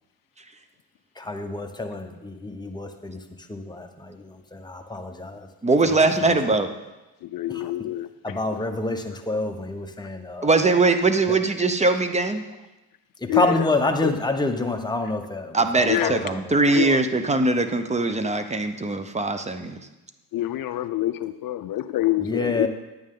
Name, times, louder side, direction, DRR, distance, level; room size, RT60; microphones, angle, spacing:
voice 1, 1.2-3.2 3.5-4.2 4.5-5.4 5.9-6.1 8.2-10.5 13.2-15.6 16.0-16.1 22.2-22.7, left 2 dB, 10° left, 4 dB, 1.0 m, -27 dB
voice 2, 5.6-6.7 10.4-12.4 15.5-19.8, right 3 dB, 15° right, 9 dB, 0.8 m, -21 dB
voice 3, 7.2-8.7 9.1-9.2 10.0-10.1 13.3-14.1 15.8-16.4 16.7-17.0 20.3-22.7, left 14 dB, 55° left, 12 dB, 0.5 m, -27 dB
10.5 x 8.8 x 3.8 m, 1.0 s
cardioid pair, 95°, 41 cm